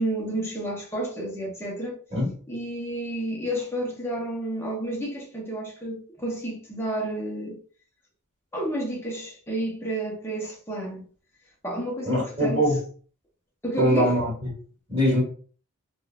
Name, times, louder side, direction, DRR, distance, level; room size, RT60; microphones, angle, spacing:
voice 1, 0.0-2.0 2.5-7.6 8.5-11.0 11.6-12.7 13.6-14.1, right 1 dB, 10° left, 0.8 m, -31 dB
voice 2, 12.0-12.8 13.8-14.5 14.9-15.2, equal, 30° right, 1.5 m, -22 dB
3.6 x 2.3 x 2.4 m
head